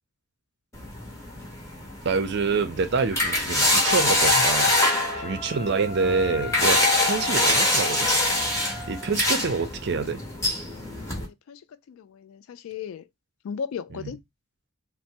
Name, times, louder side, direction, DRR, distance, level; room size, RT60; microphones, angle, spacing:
sound 1, 0.7-11.2, left 1 dB, 15° left, 0.9 m, -24 dB
voice 1, 2.0-4.8 5.2-8.1 8.9-10.2 13.9-14.1, right 4 dB, 55° right, 0.5 m, -26 dB
Wind instrument woodwind instrument, 3.9-9.2, left 2 dB, 45° left, 1.0 m, -38 dB
voice 2, 11.1-11.6 11.9-13.0 13.4-14.2, left 7 dB, 80° left, 0.3 m, -36 dB
3.2 x 2.0 x 2.8 m
head